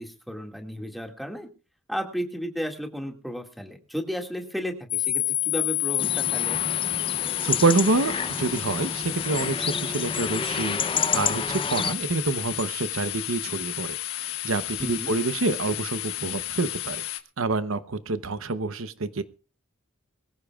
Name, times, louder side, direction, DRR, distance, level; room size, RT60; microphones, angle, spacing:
voice 1, 0.0-1.5 1.9-6.6 14.8-15.1, equal, ahead, 3 dB, 2.0 m, -34 dB
sound 1, 4.9-17.2, left 16 dB, 85° left, 1.4 m, -30 dB
sound 2, 6.0-11.9, left 5 dB, 25° left, 0.6 m, -30 dB
voice 2, 7.4-10.8 11.1-14.0 14.4-17.0 17.4-19.2, right 3 dB, 70° right, 11 dB, 0.9 m, -27 dB
23.0 x 15.0 x 2.4 m, 0.34 s
head